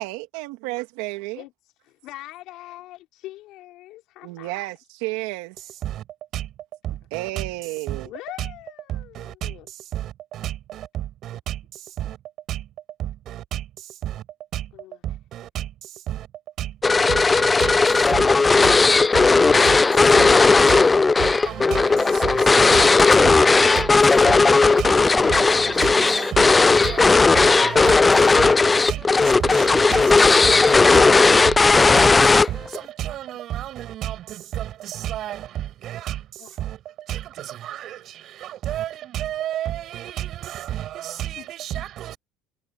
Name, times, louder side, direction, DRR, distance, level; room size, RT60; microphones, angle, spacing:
voice 1, 0.0-1.4 4.2-5.6 7.1-8.1, right 21 dB, 85° right, 2.2 m, -31 dB
voice 2, 1.4-1.7 2.0-4.6 8.0-9.7 14.7-15.0 21.2-22.7 32.1-32.6 36.4-36.6 41.4-41.9, left 16 dB, 65° left, 5.3 m, -44 dB
voice 3, 5.6-6.5 6.8-7.5 7.9-8.1 8.4-8.5 8.9-12.2 12.5-12.7 13.0-14.2 14.5-14.7 15.0-16.3 16.6-16.8 17.1-20.4 20.7-20.9 21.2-42.2, right 12 dB, 55° right, 6.2 m, -32 dB
sound 1, 16.8-32.8, left 3 dB, 20° left, 0.3 m, -16 dB
supercardioid pair, 100°, 0 cm